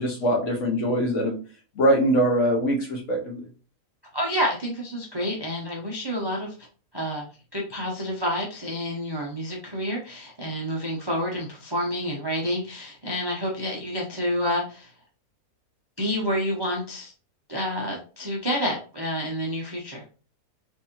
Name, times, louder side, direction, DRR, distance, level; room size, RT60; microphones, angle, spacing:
voice 1, 0.0-1.4 1.8-3.5, equal, 55° left, 0 dB, 1.1 m, -23 dB
voice 2, 4.1-6.5 6.9-7.2 7.5-14.9 16.0-17.1 17.5-20.0, equal, 35° right, -2 dB, 0.4 m, -29 dB
3.5 x 3.2 x 2.9 m, 0.37 s
omnidirectional pair, 1.7 m